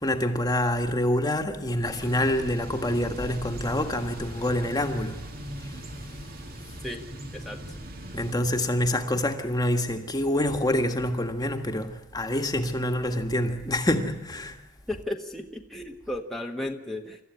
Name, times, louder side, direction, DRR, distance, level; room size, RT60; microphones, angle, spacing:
voice 1, 0.0-5.2 5.6-5.8 8.1-14.6, left 1 dB, 20° left, 1.6 m, -26 dB
Thunder / Bicycle, 1.8-8.3, equal, 50° right, 2.4 m, -39 dB
voice 2, 14.9-17.2, left 1 dB, ahead, 1.3 m, -34 dB
28.0 x 14.0 x 9.6 m
head